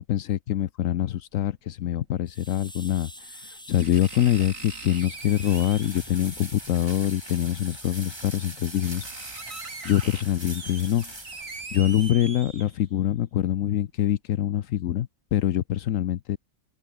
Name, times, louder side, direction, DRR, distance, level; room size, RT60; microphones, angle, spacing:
voice 1, 0.0-9.1 9.8-11.1 11.7-16.4, left 12 dB, 80° left, 1.1 m, -25 dB
sound 1, 1.3-1.4 2.9-3.0 3.8-6.1 7.5-7.6 8.2-8.3 8.5-13.0 13.4-13.5, right 4 dB, 85° right, 3.1 m, -41 dB
sound 2, 2.3-12.1, equal, 5° left, 5.3 m, -47 dB
sound 3, 4.2-12.1, right 1 dB, 20° right, 2.8 m, -43 dB
open air
omnidirectional pair, 1.4 m